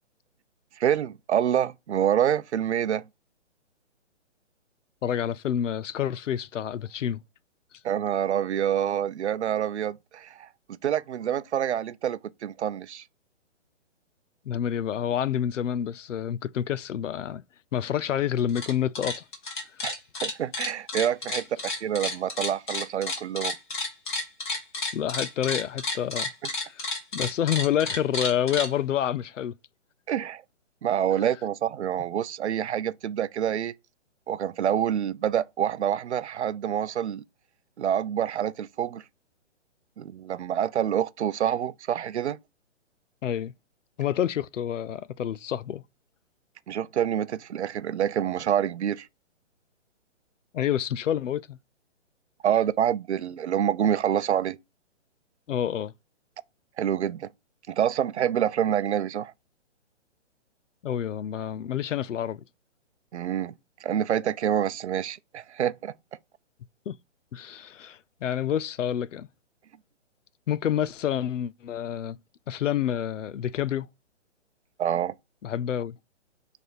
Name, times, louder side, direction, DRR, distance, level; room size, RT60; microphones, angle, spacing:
voice 1, 0.8-3.0 7.8-13.0 19.8-19.9 20.2-23.6 30.1-30.4 30.8-33.7 34.3-37.2 37.8-39.0 40.0-42.4 46.7-49.1 52.4-54.6 56.8-57.3 57.7-59.3 63.1-63.5 63.8-65.9 74.8-75.1, right 9 dB, 65° right, 0.6 m, -27 dB
voice 2, 5.0-7.2 14.5-17.4 17.7-19.2 19.8-19.9 24.9-26.3 26.7-26.9 27.1-29.5 43.2-43.5 44.0-45.8 50.5-51.6 55.5-55.9 60.8-62.4 66.9-67.0 67.3-69.3 70.5-72.2 72.5-73.9 75.4-76.0, left 10 dB, 85° left, 0.6 m, -28 dB
sound 1, 18.4-18.7 19.0-28.7, left 2 dB, 40° left, 2.2 m, -31 dB
6.6 x 3.5 x 4.1 m
hypercardioid pair, 180°, 36 cm